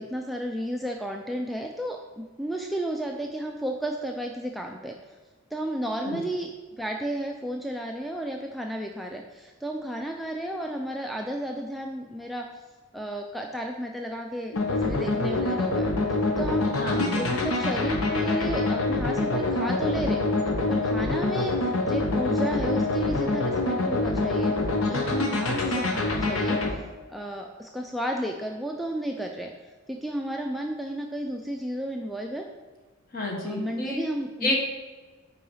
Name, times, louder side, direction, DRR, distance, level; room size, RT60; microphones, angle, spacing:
voice 1, 0.0-5.0 5.5-6.5 6.8-12.5 12.9-15.9 16.4-16.7 16.9-20.2 20.7-24.5 24.9-26.6 27.1-29.5 29.9-32.5 33.4-34.6, right 1 dB, ahead, 1 dB, 0.3 m, -32 dB
sound 1, 14.5-26.7, left 2 dB, 85° left, 1.0 m, -25 dB
voice 2, 16.8-17.2 33.1-34.0 34.4-34.6, left 1 dB, 45° left, 0 dB, 1.3 m, -29 dB
5.7 x 4.8 x 5.5 m, 1.3 s
head